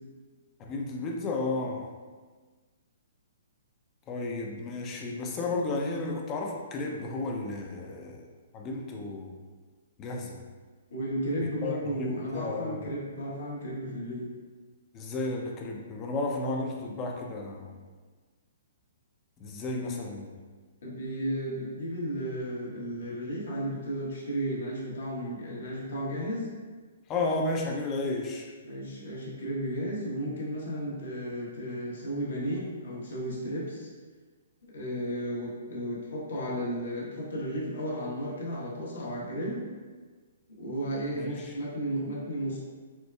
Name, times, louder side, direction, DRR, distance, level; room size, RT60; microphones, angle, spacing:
voice 1, 0.6-1.9 4.1-8.3 8.5-9.4 10.0-10.4 11.6-12.9 14.9-17.7 19.4-20.3 27.1-28.5 41.1-41.5, left 2 dB, 25° left, 0 dB, 0.5 m, -33 dB
voice 2, 10.9-14.3 20.8-26.5 28.6-33.9 34.7-39.6 40.5-42.6, equal, 75° left, -5 dB, 1.1 m, -34 dB
4.3 x 2.2 x 2.2 m, 1.4 s
hypercardioid pair, 135°, 0 cm